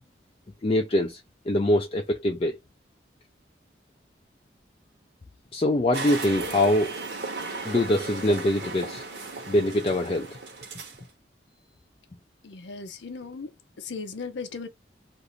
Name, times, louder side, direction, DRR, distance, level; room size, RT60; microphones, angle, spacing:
voice 1, 0.6-1.2 1.5-2.5 5.5-6.9 7.6-9.0 9.5-10.4, left 1 dB, 30° left, 0.4 m, -23 dB
sound 1, 5.9-11.0, right 3 dB, 65° right, 1.0 m, -35 dB
voice 2, 12.4-13.5 13.8-14.7, left 4 dB, 85° left, 0.6 m, -37 dB
2.6 x 2.5 x 3.0 m
head